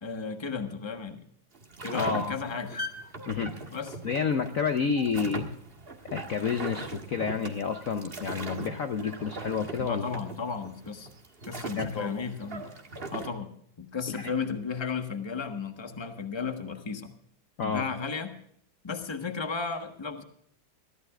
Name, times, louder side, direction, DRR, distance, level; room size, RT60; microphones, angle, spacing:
voice 1, 0.0-1.2 1.8-2.8 3.7-4.0 9.8-11.1 11.5-12.6 13.1-17.1 17.6-18.3 18.8-20.2, left 5 dB, 15° left, 6 dB, 1.1 m, -34 dB
sound 1, 1.5-13.3, right 2 dB, 30° right, 1.6 m, -40 dB
voice 2, 1.9-2.3 3.3-3.5 4.0-5.5 6.1-10.0 11.8-12.2 14.1-14.3 17.6-17.9, left 6 dB, 55° left, 6 dB, 1.1 m, -29 dB
23.0 x 14.5 x 2.4 m, 0.66 s
omnidirectional pair, 2.1 m